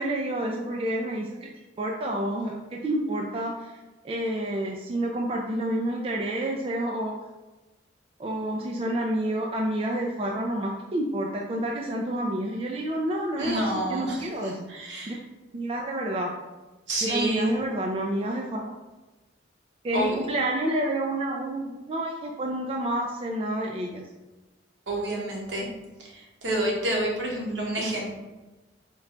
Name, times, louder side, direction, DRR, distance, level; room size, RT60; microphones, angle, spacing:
voice 1, 0.0-1.5 1.8-3.7 4.0-7.1 8.2-14.6 15.1-15.2 15.5-16.3 17.0-18.7 19.8-24.0 27.8-28.1, right 1 dB, 30° right, 0 dB, 0.3 m, -29 dB
voice 2, 13.4-15.2 16.9-17.5 19.9-20.1 24.9-25.7 26.0-28.1, right 1 dB, 65° right, -2 dB, 1.0 m, -29 dB
4.5 x 2.2 x 3.7 m, 1.1 s
head